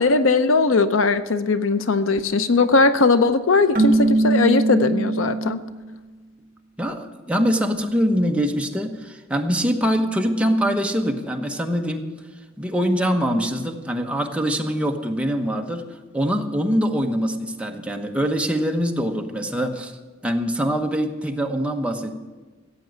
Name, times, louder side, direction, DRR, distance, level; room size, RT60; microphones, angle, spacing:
voice 1, 0.0-5.6, left 3 dB, 70° left, 11 dB, 0.7 m, -19 dB
Keyboard (musical), 3.8-5.7, right 2 dB, 45° right, 1.6 m, -21 dB
voice 2, 6.8-12.0 12.6-15.8 16.1-19.9 20.2-22.1, equal, 5° right, 3 dB, 1.0 m, -23 dB
14.5 x 8.5 x 7.8 m, 1.3 s
head